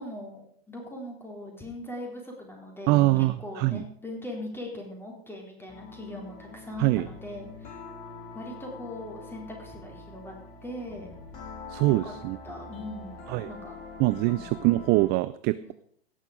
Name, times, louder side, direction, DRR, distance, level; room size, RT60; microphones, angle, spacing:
voice 1, 0.0-7.8 8.3-10.4 10.6-11.1 11.9-12.1 12.4-13.8 14.2-14.5, left 1 dB, 5° left, 0 dB, 3.8 m, -40 dB
voice 2, 2.9-3.8 6.8-7.1 11.7-12.4 13.3-13.5 14.0-15.7, right 19 dB, 35° right, 15 dB, 0.4 m, -24 dB
sound 1, 5.7-15.2, left 4 dB, 45° left, 3.5 m, -44 dB
17.5 x 6.4 x 5.1 m, 0.66 s
figure-of-eight pair, 90°, 31 cm